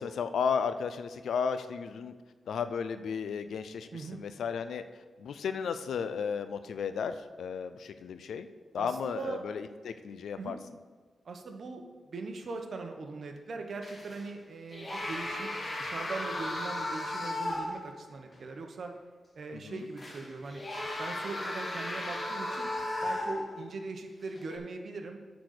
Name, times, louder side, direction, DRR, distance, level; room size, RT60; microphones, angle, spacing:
voice 1, 0.0-2.1 2.5-4.8 5.2-8.5 8.7-10.6 19.5-19.9, left 6 dB, 90° left, 11 dB, 0.5 m, -34 dB
voice 2, 3.9-4.2 8.8-9.4 10.4-10.6 11.2-18.9 19.3-20.6 21.0-22.7 23.0-25.2, right 3 dB, 60° right, 4 dB, 1.1 m, -40 dB
sound 1, 13.8-14.3 14.7-17.9 18.3-18.4 20.0-23.7 24.4-24.6, left 1 dB, 30° left, 1.4 m, -35 dB
10.0 x 4.1 x 6.6 m, 1.4 s
wide cardioid pair, 110°, 0 cm